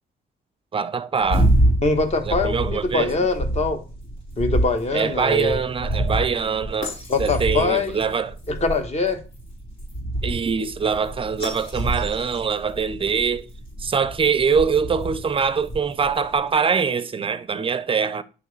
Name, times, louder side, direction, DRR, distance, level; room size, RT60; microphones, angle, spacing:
voice 1, 0.7-1.5 2.3-3.1 4.9-6.9 7.2-8.4 10.2-13.5 13.8-18.2, right 6 dB, 25° right, 0.5 m, -23 dB
sound 1, 1.2-16.4, right 1 dB, 75° left, 3.3 m, -27 dB
voice 2, 1.8-3.8 4.4-5.6 7.1-8.0 8.5-9.2, left 3 dB, 35° left, 1.1 m, -23 dB
9.4 x 3.4 x 3.2 m
cardioid pair, 90°, 20 cm